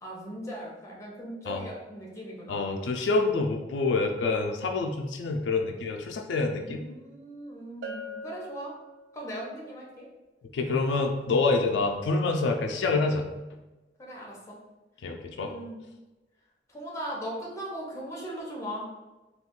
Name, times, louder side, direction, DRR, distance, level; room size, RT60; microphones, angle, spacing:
voice 1, 0.0-2.7 6.6-8.8 9.1-10.1 14.0-14.6 15.3-15.8 16.7-18.9, right 1 dB, 15° left, -4 dB, 0.7 m, -39 dB
voice 2, 2.5-6.8 10.5-13.3 15.0-15.5, left 3 dB, 85° left, 3 dB, 0.3 m, -27 dB
Bell, 7.8-9.4, equal, 80° right, 0.5 m, -41 dB
2.3 x 2.3 x 3.6 m, 1.1 s
head